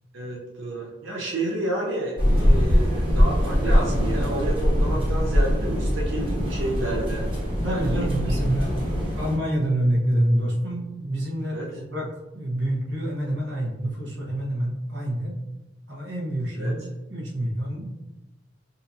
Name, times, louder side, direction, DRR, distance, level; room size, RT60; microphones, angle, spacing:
voice 1, 0.1-7.3 7.7-8.1 11.5-11.7 16.5-16.8, right 1 dB, 85° right, -4 dB, 0.8 m, -30 dB
sound 1, 2.2-9.4, equal, 25° right, 1.4 m, -22 dB
voice 2, 7.6-8.7 9.1-12.1 12.3-15.4 15.9-17.9, right 1 dB, 65° right, -2 dB, 1.1 m, -27 dB
6.6 x 2.8 x 2.7 m, 1.0 s
head